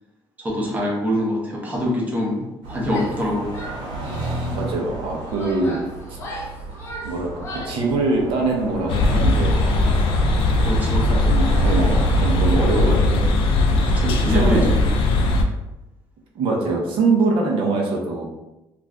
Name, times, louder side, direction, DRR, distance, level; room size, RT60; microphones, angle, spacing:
voice 1, 0.4-3.6 10.6-11.1 13.8-14.9, left 1 dB, 15° right, -2 dB, 0.6 m, -25 dB
sound 1, 2.6-14.6, right 2 dB, 90° right, 1.0 m, -32 dB
Female speech woman speaking / Yell, 2.8-3.3 3.5-4.4 5.0-7.9, equal, 30° left, 0.6 m, -37 dB
voice 2, 4.5-5.8 6.1-6.2 7.0-9.6 11.0-13.3 14.1-14.7 16.3-18.2, right 3 dB, 75° right, 0 dB, 0.7 m, -23 dB
sound 2, 8.9-15.4, left 2 dB, 75° left, 0.4 m, -19 dB
2.5 x 2.3 x 3.2 m, 0.96 s
cardioid pair, 165°, 9 cm